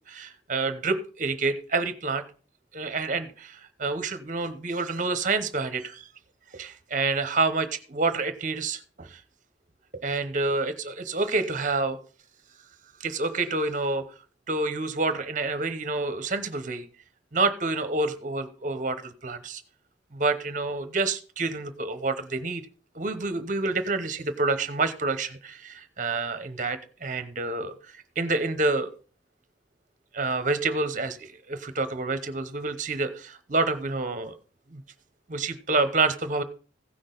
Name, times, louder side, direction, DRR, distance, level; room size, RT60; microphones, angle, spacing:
voice 1, 0.1-2.2 2.7-6.1 6.5-9.2 9.9-12.0 13.0-14.0 14.5-16.8 17.3-19.6 20.1-22.6 22.9-28.9 30.1-34.4 34.7-34.8 35.3-36.4, right 3 dB, 40° right, 11 dB, 0.9 m, -28 dB
15.5 x 6.2 x 3.9 m, 0.38 s
head